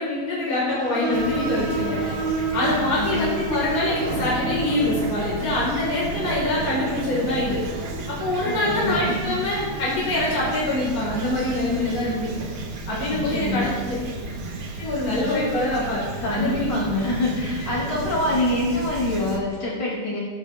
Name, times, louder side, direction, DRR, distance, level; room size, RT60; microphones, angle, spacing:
voice 1, 0.0-2.1 2.5-7.6 8.1-12.3 12.9-13.9 14.8-16.0 16.3-16.7, left 2 dB, 40° left, -6 dB, 5.6 m, -24 dB
sound 1, 0.7-8.0, right 4 dB, 70° right, 6.4 m, -32 dB
Fowl / Chirp tweet, 1.1-19.4, right 3 dB, 50° right, 2.1 m, -32 dB
voice 2, 2.6-3.3 8.4-9.4 13.1-13.9 15.1-15.4 16.2-20.2, left 1 dB, 70° left, -6 dB, 7.8 m, -26 dB
23.0 x 14.0 x 3.6 m, 1.4 s
omnidirectional pair, 3.6 m